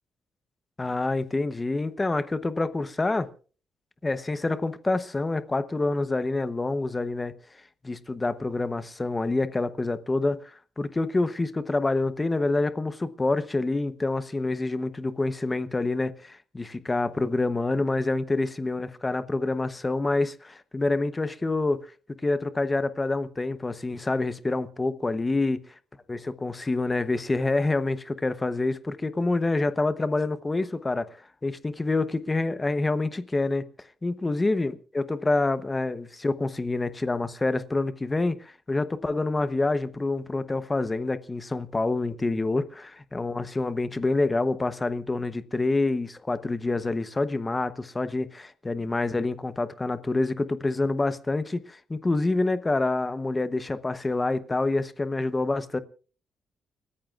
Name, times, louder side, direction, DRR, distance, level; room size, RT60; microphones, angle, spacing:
voice 1, 0.8-3.3 4.0-7.4 7.8-21.9 22.2-25.6 26.1-31.2 31.4-33.7 34.0-55.8, left 2 dB, 15° left, 0.8 m, -27 dB
30.0 x 14.0 x 2.4 m
cardioid pair, 155°, 0 cm